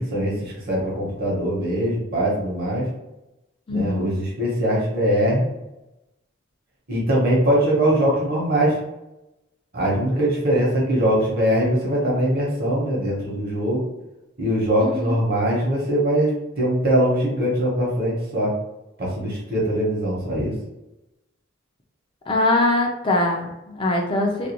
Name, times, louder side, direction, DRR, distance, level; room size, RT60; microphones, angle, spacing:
voice 1, 0.0-2.9 3.7-5.4 6.9-8.8 9.7-13.8 14.4-18.5 19.0-20.5, right 1 dB, 45° right, -4 dB, 0.9 m, -22 dB
voice 2, 3.7-4.1 14.8-15.2 22.3-24.5, left 2 dB, 25° left, 1 dB, 0.4 m, -22 dB
2.4 x 2.2 x 2.8 m, 0.94 s
head